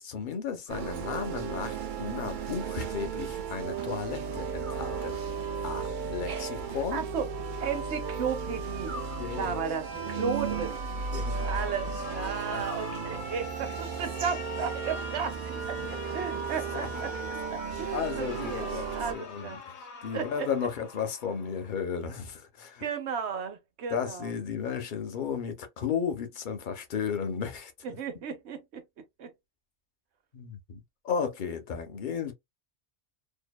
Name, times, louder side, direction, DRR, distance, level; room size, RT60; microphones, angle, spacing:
voice 1, 0.0-5.2 5.6-7.0 9.2-9.6 10.1-10.3 11.1-11.5 12.5-12.6 16.7-16.9 17.9-18.9 19.1-19.8 20.0-22.8 23.9-27.7 30.3-32.3, left 7 dB, 55° left, 0.7 m, -34 dB
sound 1, 0.7-1.5 4.6-5.6 8.8-9.9 12.6-13.6, left 2 dB, 15° right, 0.5 m, -48 dB
sound 2, 0.7-19.1, right 6 dB, 60° right, 0.6 m, -35 dB
voice 2, 6.9-7.3 7.6-8.9 9.3-10.8 11.5-15.8 16.1-17.1 17.5-19.6 20.1-20.5 22.8-24.3 27.8-28.8 29.2-29.3, right 6 dB, 85° right, 1.0 m, -34 dB
Alarm, 10.8-21.8, left 3 dB, 75° left, 0.9 m, -43 dB
2.7 x 2.1 x 2.2 m
omnidirectional pair, 1.1 m